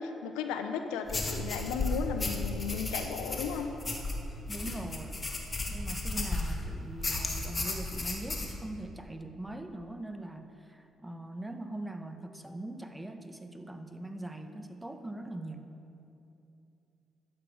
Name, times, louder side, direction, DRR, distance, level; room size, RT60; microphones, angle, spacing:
voice 1, 0.0-3.7 4.7-4.9, left 7 dB, 90° left, 7 dB, 0.6 m, -35 dB
sound 1, 1.1-6.6 7.0-8.5, left 2 dB, 35° left, 1.8 m, -34 dB
voice 2, 4.5-5.3 5.7-15.7, right 1 dB, 10° right, 7 dB, 1.0 m, -42 dB
12.0 x 8.2 x 4.9 m, 2.8 s
supercardioid pair, 55°, 0 cm